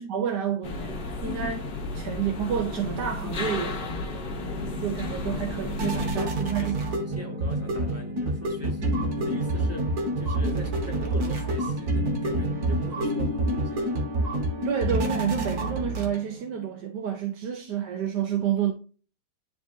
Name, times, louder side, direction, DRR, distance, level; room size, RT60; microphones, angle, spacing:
voice 1, 0.0-1.7 1.9-4.2 4.8-6.8 14.6-18.7, right 8 dB, 85° right, 1.5 m, -29 dB
sound 1, 0.6-6.1, left 3 dB, 35° left, 1.2 m, -33 dB
sound 2, 3.8-16.5, right 1 dB, 60° right, 2.2 m, -28 dB
voice 2, 5.8-14.1, equal, 10° right, 1.8 m, -39 dB
10.5 x 4.2 x 2.6 m
omnidirectional pair, 1.8 m